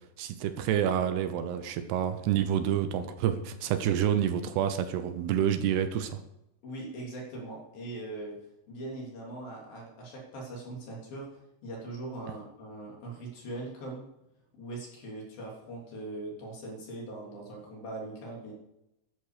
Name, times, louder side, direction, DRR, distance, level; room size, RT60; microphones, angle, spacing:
voice 1, 0.2-6.2, right 9 dB, 80° right, 9 dB, 2.9 m, -28 dB
voice 2, 6.6-8.4 8.7-11.3 11.6-14.0 14.5-18.5, right 2 dB, 60° left, -2 dB, 5.0 m, -41 dB
13.0 x 11.5 x 5.0 m, 0.86 s
omnidirectional pair, 4.8 m